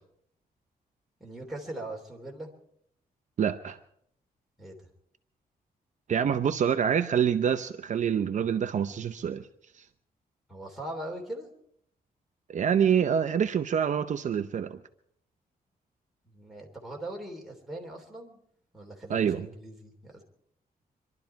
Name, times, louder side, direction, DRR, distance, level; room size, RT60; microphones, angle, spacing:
voice 1, 1.2-2.5 4.6-4.7 10.5-11.5 16.3-18.4 18.7-20.2, right 1 dB, ahead, -1 dB, 3.1 m, -40 dB
voice 2, 3.4-3.8 6.1-9.5 9.8-9.9 12.5-14.8 19.1-19.5, right 8 dB, 50° right, 8 dB, 0.6 m, -26 dB
25.5 x 12.0 x 4.6 m, 0.70 s
wide cardioid pair, 150°, 16 cm